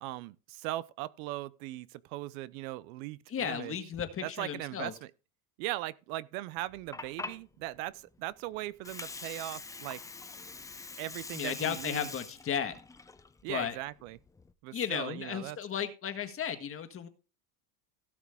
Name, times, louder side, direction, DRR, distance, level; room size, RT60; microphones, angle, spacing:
voice 1, 0.0-3.8 4.2-5.1 5.6-10.0 11.0-12.1 13.4-14.2 14.6-15.6, right 17 dB, 70° right, 0.7 m, -39 dB
voice 2, 3.3-4.9 11.3-12.8 13.5-13.8 14.7-17.1, left 8 dB, 30° left, 1.6 m, -34 dB
Water, 6.6-14.5, left 3 dB, 10° left, 0.5 m, -45 dB
17.0 x 6.1 x 3.5 m
supercardioid pair, 125°, 43 cm